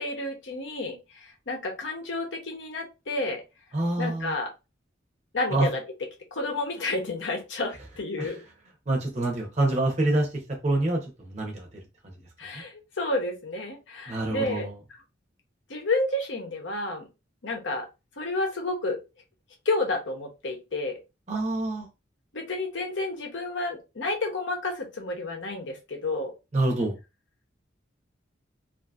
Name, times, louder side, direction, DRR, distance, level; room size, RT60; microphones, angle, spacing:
voice 1, 0.0-3.4 4.0-4.5 5.3-5.8 6.3-8.4 12.4-14.7 15.7-17.0 17.4-17.9 18.2-19.0 19.7-21.0 22.3-26.3, left 2 dB, 75° left, 0.8 m, -30 dB
voice 2, 3.7-4.3 5.5-5.7 8.2-8.3 8.9-11.7 12.0-12.2 12.5-12.6 14.1-14.7 21.3-21.9 26.5-27.0, right 2 dB, 35° right, 0.7 m, -26 dB
2.6 x 2.5 x 2.4 m
head